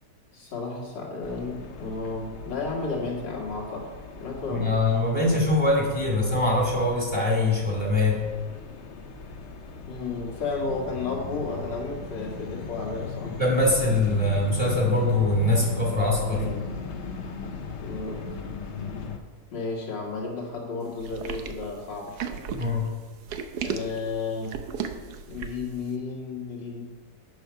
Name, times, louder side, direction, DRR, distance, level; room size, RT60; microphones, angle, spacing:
voice 1, 0.3-3.9 4.2-4.8 9.9-13.3 16.3-16.7 17.8-18.2 19.5-22.4 23.6-24.6 25.3-26.8, left 3 dB, 85° left, -3 dB, 2.5 m, -33 dB
sound 1, 1.2-19.2, left 4 dB, 55° left, 0.8 m, -38 dB
voice 2, 4.5-8.2 13.4-16.4 22.5-22.9, left 2 dB, 15° right, -2 dB, 2.2 m, -23 dB
sound 2, 21.0-25.7, right 7 dB, 70° right, 1.2 m, -34 dB
8.3 x 6.5 x 5.6 m, 1.4 s
omnidirectional pair, 1.9 m